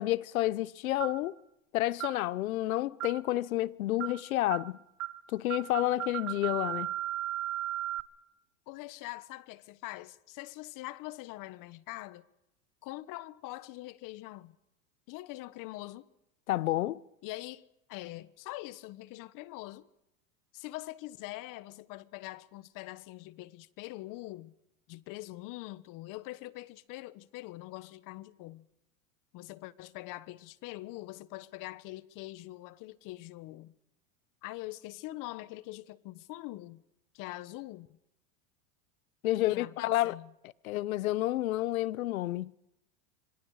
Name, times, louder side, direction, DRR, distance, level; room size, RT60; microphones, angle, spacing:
voice 1, 0.0-1.3 1.7-4.8 5.3-6.9 16.5-17.0 39.2-40.2 40.6-42.5, left 15 dB, 85° left, 0.9 m, -30 dB
sound 1, 1.0-1.3 2.0-2.2 3.0-3.3 4.0-4.2 4.5-4.7 5.0-5.2 5.5-8.0, right 14 dB, 75° right, 1.2 m, -36 dB
voice 2, 8.7-12.3 12.8-14.6 15.1-16.1 17.2-19.9 20.5-24.5 24.9-28.7 29.3-33.7 34.4-36.8 37.1-38.0 39.4-40.3, left 18 dB, 50° left, 1.3 m, -43 dB
27.0 x 25.0 x 4.9 m
supercardioid pair, 115°, 41 cm